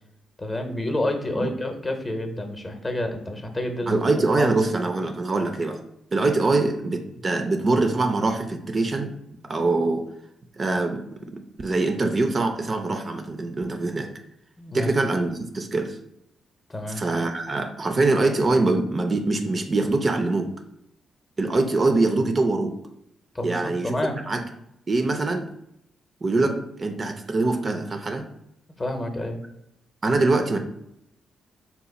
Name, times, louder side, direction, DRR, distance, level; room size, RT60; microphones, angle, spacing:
voice 1, 0.4-4.0 4.4-4.6 14.6-14.9 16.7-17.0 23.3-24.2 28.8-29.4, left 1 dB, 25° left, 5 dB, 0.7 m, -29 dB
voice 2, 3.9-5.8 6.1-9.1 9.4-10.0 10.6-14.1 14.7-16.0 17.0-20.5 21.4-22.7 23.4-23.9 24.3-24.4 24.9-25.5 26.2-28.2 30.0-30.6, right 2 dB, 40° right, 6 dB, 0.4 m, -23 dB
2.8 x 2.1 x 4.1 m, 0.78 s
supercardioid pair, 55°, 0 cm